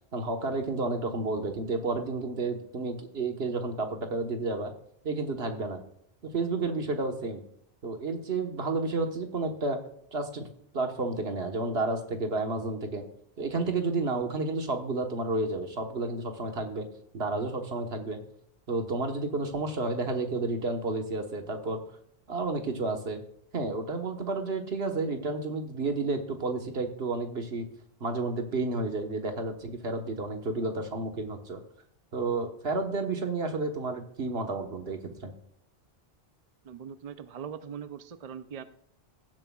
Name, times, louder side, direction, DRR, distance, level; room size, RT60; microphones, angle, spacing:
voice 1, 0.1-4.7 5.0-5.8 6.2-7.4 7.8-9.8 10.1-10.4 10.7-13.0 13.4-16.9 17.1-18.2 18.7-21.8 22.3-23.2 23.5-27.6 28.0-31.6 32.1-35.3, right 3 dB, 75° right, 5 dB, 1.5 m, -31 dB
voice 2, 36.6-38.6, right 8 dB, 45° right, 11 dB, 0.6 m, -41 dB
16.5 x 7.6 x 2.3 m, 0.68 s
omnidirectional pair, 1.1 m